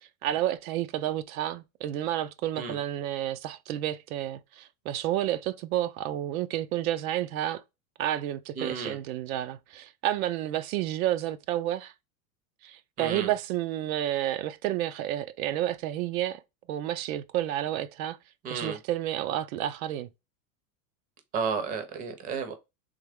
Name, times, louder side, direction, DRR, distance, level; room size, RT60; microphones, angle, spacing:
voice 1, 0.0-7.6 8.0-11.9 12.6-16.4 16.7-18.2 18.5-20.1, right 12 dB, 75° right, 0.5 m, -30 dB
voice 2, 8.6-9.0 13.0-13.3 18.4-18.8 21.3-22.5, right 5 dB, 20° right, 0.6 m, -32 dB
3.5 x 3.1 x 3.4 m
supercardioid pair, 160°, 43 cm